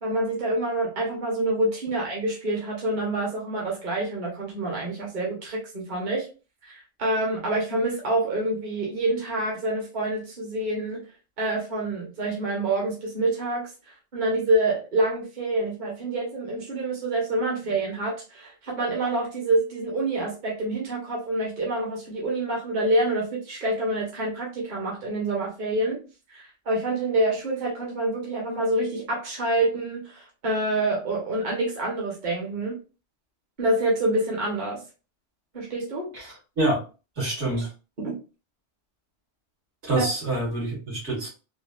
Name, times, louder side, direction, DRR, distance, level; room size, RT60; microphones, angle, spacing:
voice 1, 0.0-6.3 6.6-11.1 11.4-13.7 14.1-26.0 26.3-32.8 33.6-34.8 35.5-36.1 38.0-38.1 40.0-40.1, right 1 dB, 45° right, 1.0 m, -27 dB
voice 2, 36.1-36.8 37.2-37.7 39.8-41.3, right 2 dB, 75° right, 1.9 m, -26 dB
3.6 x 2.2 x 2.3 m
omnidirectional pair, 1.2 m